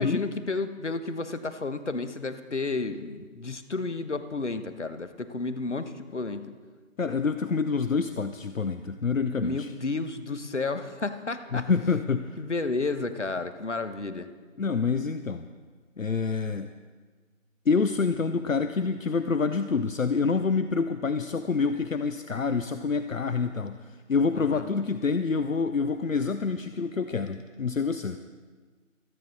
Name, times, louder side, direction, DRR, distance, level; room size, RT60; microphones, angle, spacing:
voice 1, 0.0-6.4 9.4-11.7 12.4-14.3 24.3-24.7, left 3 dB, 60° left, 11 dB, 1.2 m, -32 dB
voice 2, 7.0-9.7 11.5-12.4 14.6-15.5 16.0-16.7 17.7-28.2, left 5 dB, 75° left, 10 dB, 0.8 m, -27 dB
26.5 x 9.9 x 4.0 m, 1.4 s
figure-of-eight pair, 165°, 40 cm